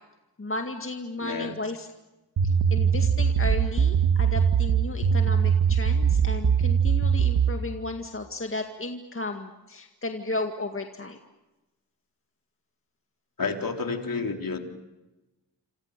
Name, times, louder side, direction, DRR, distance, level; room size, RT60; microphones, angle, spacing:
voice 1, 0.4-1.9 2.4-11.2, left 2 dB, 30° left, 5 dB, 2.0 m, -34 dB
voice 2, 1.2-1.6 13.4-14.6, left 4 dB, 50° left, 4 dB, 3.8 m, -30 dB
sound 1, 2.4-7.6, right 7 dB, 70° right, 2.1 m, -22 dB
28.0 x 27.0 x 6.8 m, 1.1 s
cardioid pair, 65°, 43 cm